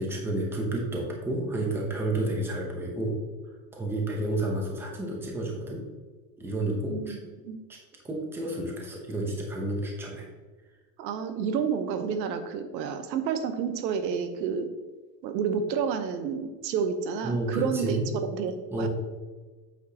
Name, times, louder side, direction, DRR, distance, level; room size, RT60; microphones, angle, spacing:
voice 1, 0.0-3.3 3.7-5.8 6.4-7.1 7.7-7.8 8.0-10.3 17.2-18.1 18.7-18.9, right 1 dB, 5° right, -1 dB, 0.8 m, -30 dB
voice 2, 11.0-14.7 15.2-18.0 18.3-18.9, right 6 dB, 90° right, 8 dB, 1.1 m, -30 dB
8.4 x 6.0 x 2.9 m, 1.3 s
supercardioid pair, 160°, 50 cm